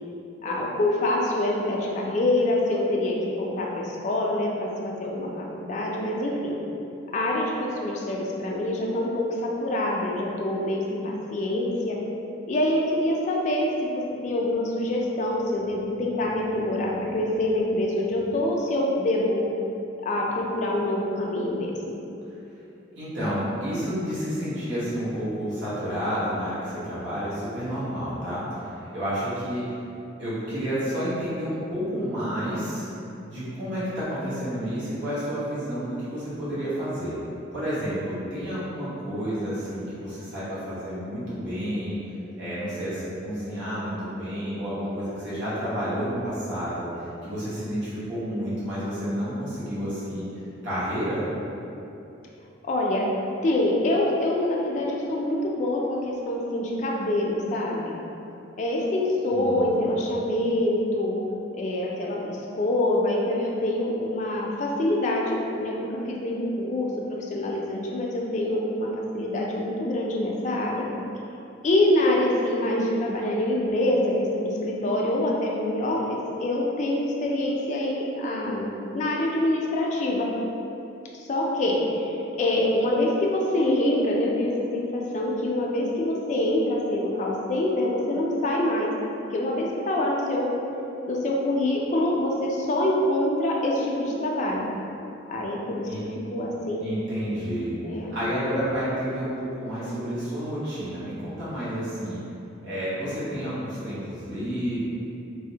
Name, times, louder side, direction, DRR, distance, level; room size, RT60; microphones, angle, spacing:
voice 1, 0.4-6.6 7.1-12.0 12.5-19.4 20.0-22.0 52.6-53.1 53.4-58.0 58.6-61.2 61.5-66.9 67.2-68.9 69.1-70.9 71.6-78.7 78.9-80.3 81.2-82.0 82.4-90.5 91.1-94.7 95.3-95.9 96.3-96.9 97.8-98.2, left 1 dB, 40° left, -2 dB, 0.3 m, -25 dB
voice 2, 22.9-29.8 30.2-32.9 33.2-37.2 37.5-42.0 42.4-46.9 47.2-50.2 50.6-51.2 59.3-59.9 95.9-96.0 96.7-97.7 98.1-102.2 102.6-104.8, equal, 65° right, -11 dB, 1.1 m, -30 dB
3.3 x 2.0 x 2.8 m, 2.8 s
head